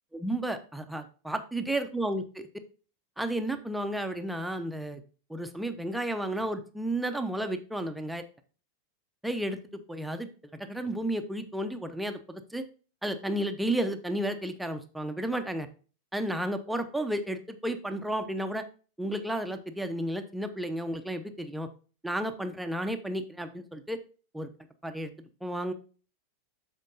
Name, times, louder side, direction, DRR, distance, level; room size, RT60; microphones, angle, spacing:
voice 1, 0.1-2.5 3.2-5.0 5.3-8.2 9.2-12.6 13.0-15.7 16.1-18.6 19.0-21.7 22.0-24.0 24.3-24.5 24.8-25.1 25.4-25.7, right 1 dB, 5° right, 7 dB, 0.8 m, -32 dB
13.0 x 4.5 x 2.6 m, 0.36 s
figure-of-eight pair, 90°, 0 cm